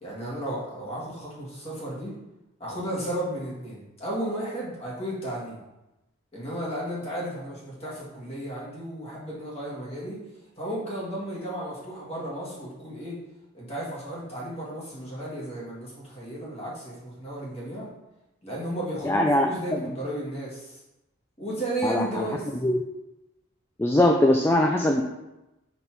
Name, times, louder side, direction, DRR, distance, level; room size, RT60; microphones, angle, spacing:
voice 1, 0.0-2.1 2.6-5.6 6.3-10.2 10.6-13.2 13.5-17.9 18.4-20.8 21.4-22.4, right 1 dB, 30° left, -6 dB, 1.8 m, -34 dB
voice 2, 19.0-19.5 19.7-19.8 21.8-22.3 22.6-22.8 23.8-25.0, left 1 dB, 10° left, 2 dB, 0.3 m, -21 dB
5.5 x 4.0 x 4.5 m, 0.97 s
head